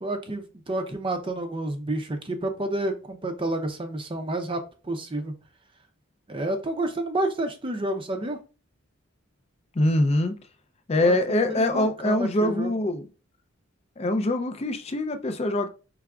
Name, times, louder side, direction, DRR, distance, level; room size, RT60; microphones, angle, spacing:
voice 1, 0.0-5.3 6.3-8.4 11.0-12.8, right 1 dB, 25° right, 0.5 m, -30 dB
voice 2, 9.8-10.4 10.9-13.0 14.0-15.7, left 1 dB, 30° left, 0.4 m, -24 dB
4.8 x 3.3 x 2.3 m
head